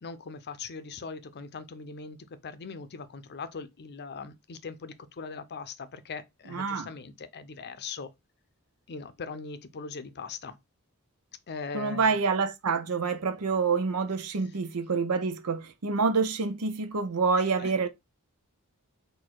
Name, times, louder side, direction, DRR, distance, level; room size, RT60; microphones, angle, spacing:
voice 1, 0.0-2.2 2.4-8.1 8.9-10.6 11.5-12.2 17.6-17.7, left 5 dB, 50° left, 0.6 m, -40 dB
voice 2, 6.5-6.9 11.7-17.9, right 4 dB, 90° right, 0.7 m, -27 dB
4.2 x 2.6 x 4.5 m
head